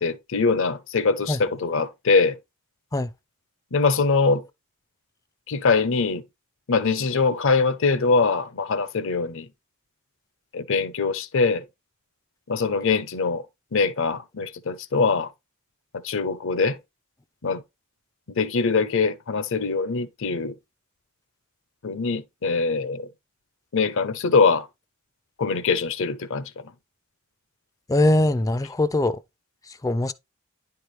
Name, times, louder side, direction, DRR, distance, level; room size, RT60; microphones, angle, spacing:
voice 1, 0.0-2.4 3.7-4.4 5.5-6.2 6.7-9.5 10.5-11.6 12.5-13.4 13.7-15.3 16.0-16.8 17.4-17.6 18.3-20.5 21.8-23.1 23.7-24.7 25.4-26.5, left 4 dB, 65° left, 0.8 m, -23 dB
voice 2, 27.9-29.2 29.8-30.1, left 1 dB, 15° left, 0.4 m, -21 dB
10.0 x 4.5 x 3.2 m
head